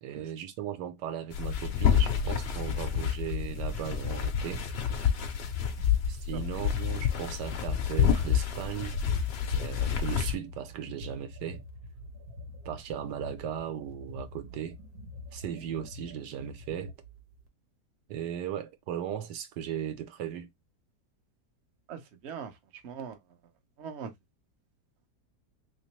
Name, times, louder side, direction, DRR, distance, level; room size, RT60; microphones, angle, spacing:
voice 1, 0.0-4.6 6.1-9.0 9.5-11.6 12.6-14.8 15.3-16.9 18.1-20.5, right 10 dB, 85° right, 1.3 m, -37 dB
sound 1, 1.3-10.3, left 8 dB, 80° left, 0.5 m, -28 dB
Female Begging, 1.8-17.5, left 1 dB, 70° right, 1.3 m, -46 dB
voice 2, 21.9-22.6 22.8-23.2 23.8-24.1, right 7 dB, 50° right, 0.9 m, -41 dB
3.2 x 3.0 x 2.9 m
omnidirectional pair, 1.8 m